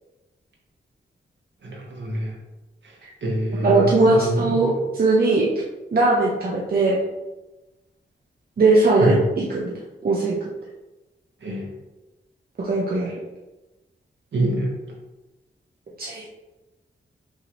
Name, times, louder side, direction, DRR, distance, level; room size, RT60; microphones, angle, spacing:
voice 1, 1.6-2.3 3.2-4.6 9.0-9.1 11.4-11.7 14.3-14.7, right 1 dB, 70° right, -3 dB, 1.3 m, -25 dB
voice 2, 3.5-5.5 5.9-7.0 8.6-9.2 9.5-9.7 10.0-10.3 12.6-13.1 16.0-16.3, right 3 dB, 50° right, -4 dB, 0.7 m, -19 dB
5.5 x 2.7 x 3.1 m, 1.1 s
wide cardioid pair, 100°, 19 cm